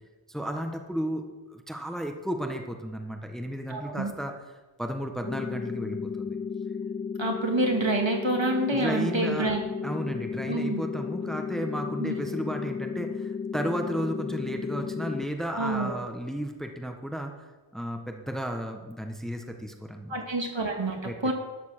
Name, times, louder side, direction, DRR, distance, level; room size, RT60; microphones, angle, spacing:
voice 1, 0.3-4.3 4.8-6.4 8.7-9.6 9.8-17.5 17.7-20.1 21.0-21.2, equal, ahead, 4 dB, 1.4 m, -33 dB
voice 2, 3.7-4.1 7.2-9.6 10.5-10.8 12.0-12.1 15.5-16.0 20.1-21.3, right 2 dB, 60° right, 2 dB, 2.5 m, -27 dB
sound 1, 5.2-15.2, left 6 dB, 20° left, 0.7 m, -34 dB
12.5 x 6.7 x 6.7 m, 1.2 s
wide cardioid pair, 45°, 49 cm